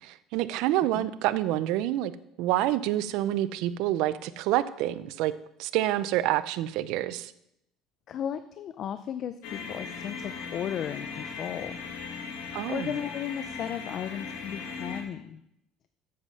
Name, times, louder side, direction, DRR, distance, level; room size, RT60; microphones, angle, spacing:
voice 1, 0.0-2.1 2.4-5.3 5.6-7.3 12.5-12.9, right 14 dB, 70° right, 15 dB, 0.5 m, -27 dB
voice 2, 8.1-11.8 12.7-15.4, left 9 dB, 45° left, 11 dB, 0.5 m, -35 dB
sound 1, 9.4-15.0, left 5 dB, 85° left, 1.8 m, -38 dB
8.0 x 7.5 x 6.5 m, 0.79 s
cardioid pair, 135°, 0 cm